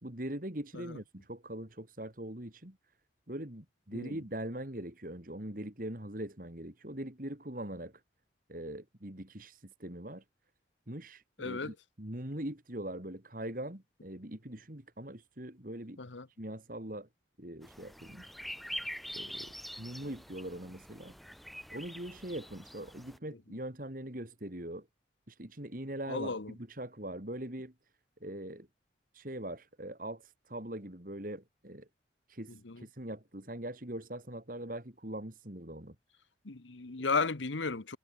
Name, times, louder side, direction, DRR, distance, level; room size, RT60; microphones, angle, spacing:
voice 1, 0.0-2.8 3.3-7.9 8.5-10.2 10.9-16.0 16.4-17.1 17.4-18.3 19.2-21.2 21.7-24.9 25.3-27.7 28.2-28.7 29.1-31.9 32.3-35.9, right 1 dB, 45° right, 2.8 m, -42 dB
voice 2, 11.4-11.7 16.0-16.3 26.1-26.5 32.6-32.8 36.4-38.0, left 4 dB, 80° left, 1.2 m, -34 dB
sound 1, 17.6-23.2, equal, ahead, 0.5 m, -45 dB
head